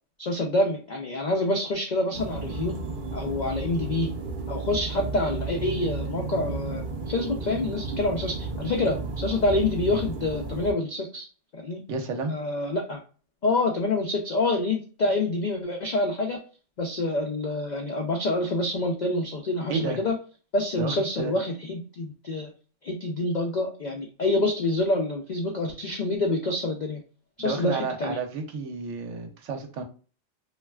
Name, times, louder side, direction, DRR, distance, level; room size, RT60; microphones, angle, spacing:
voice 1, 0.2-2.7 3.1-4.1 4.5-11.3 11.5-11.8 12.3-13.0 13.4-16.4 16.8-20.1 20.5-22.5 22.8-27.0 27.4-28.2, left 2 dB, 75° left, 2 dB, 0.4 m, -27 dB
sound 1, 2.1-10.7, right 3 dB, 60° right, 0.5 m, -33 dB
voice 2, 11.9-12.3 19.7-20.0 20.8-21.3 27.4-29.8, right 4 dB, 75° right, 5 dB, 0.9 m, -31 dB
3.1 x 2.4 x 2.2 m, 0.38 s
omnidirectional pair, 1.3 m